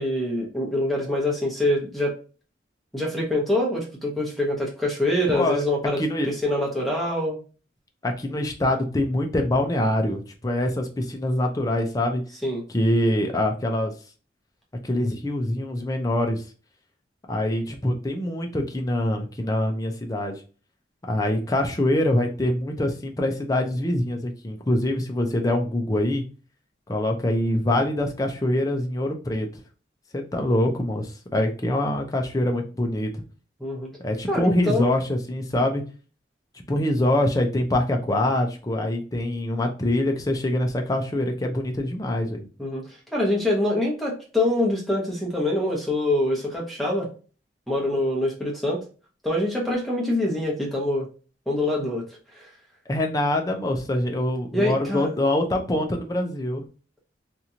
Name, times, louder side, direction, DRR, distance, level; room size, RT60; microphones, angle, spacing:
voice 1, 0.0-2.1 2.9-7.4 12.4-12.6 33.6-33.9 34.3-34.9 42.6-47.1 47.7-48.8 49.2-51.1 51.5-52.0 52.3-52.5 54.5-55.1, left 1 dB, ahead, -3 dB, 0.9 m, -25 dB
voice 2, 5.3-5.6 6.0-6.3 8.0-12.2 12.7-13.9 14.8-16.4 17.3-20.4 21.1-26.2 26.9-29.5 30.1-33.2 34.0-35.8 36.5-42.5 52.9-56.6, left 1 dB, 20° left, 3 dB, 0.5 m, -24 dB
2.9 x 2.5 x 2.8 m, 0.36 s
head